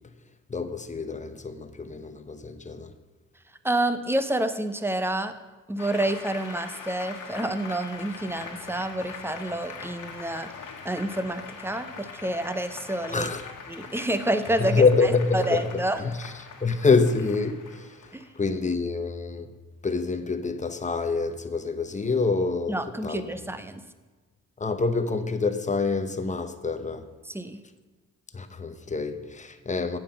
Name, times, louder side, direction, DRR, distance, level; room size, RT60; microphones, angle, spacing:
voice 1, 0.5-2.9 13.1-13.5 14.6-16.3 16.6-17.9 18.4-19.5 19.8-23.3 24.6-27.1 28.3-30.0, left 4 dB, 25° left, 0.8 m, -26 dB
voice 2, 3.6-5.4 5.7-10.5 10.8-13.3 13.7-16.0 18.1-18.3 22.7-23.8 27.3-27.6, right 1 dB, 5° right, 0.7 m, -28 dB
Applause, 5.8-18.8, left 5 dB, 70° left, 1.6 m, -42 dB
8.9 x 7.5 x 5.3 m
cardioid pair, 80°, 32 cm